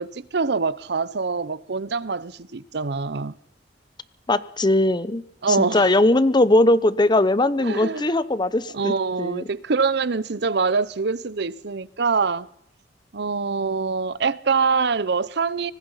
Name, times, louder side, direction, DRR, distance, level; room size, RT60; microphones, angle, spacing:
voice 1, 0.0-3.3 5.4-5.9 7.6-8.1 8.7-12.5 13.1-15.7, right 4 dB, 65° right, 0.7 m, -24 dB
voice 2, 4.3-9.4, left 1 dB, 25° left, 0.8 m, -20 dB
24.5 x 19.5 x 5.7 m
head